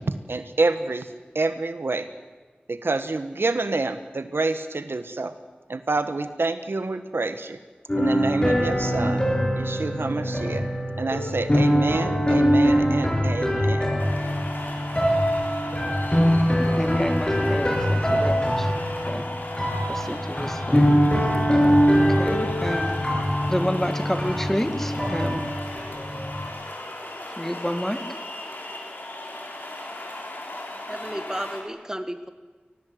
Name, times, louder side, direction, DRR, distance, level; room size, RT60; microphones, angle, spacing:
voice 1, 0.3-1.1 1.3-2.1 2.7-5.3 5.7-7.6 8.0-9.2 9.6-10.6 11.0-13.9, right 3 dB, 85° right, 10 dB, 1.2 m, -27 dB
sound 1, 7.9-26.5, equal, 25° left, 7.7 m, -23 dB
sound 2, 14.0-31.6, left 1 dB, 65° left, 4.5 m, -36 dB
voice 2, 16.7-19.2 19.9-20.8 21.9-23.0 23.5-25.4 27.4-28.2, equal, 10° left, 8 dB, 2.0 m, -29 dB
voice 3, 30.9-32.3, right 1 dB, 15° right, 9 dB, 1.8 m, -33 dB
23.5 x 19.0 x 7.9 m, 1.3 s
wide cardioid pair, 45°, 4 cm